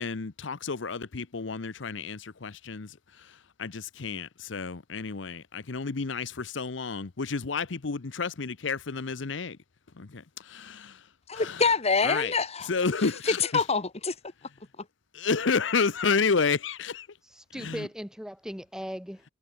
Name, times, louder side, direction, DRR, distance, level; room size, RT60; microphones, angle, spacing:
voice 1, 0.0-9.6 10.0-11.0 11.3-11.6 12.0-12.3 12.7-13.6 15.1-17.1 17.5-17.9, left 5 dB, 70° left, 0.8 m, -30 dB
voice 2, 11.3-12.7 13.2-14.1, left 4 dB, 35° left, 1.7 m, -25 dB
voice 3, 17.2-19.2, equal, 5° right, 2.2 m, -38 dB
head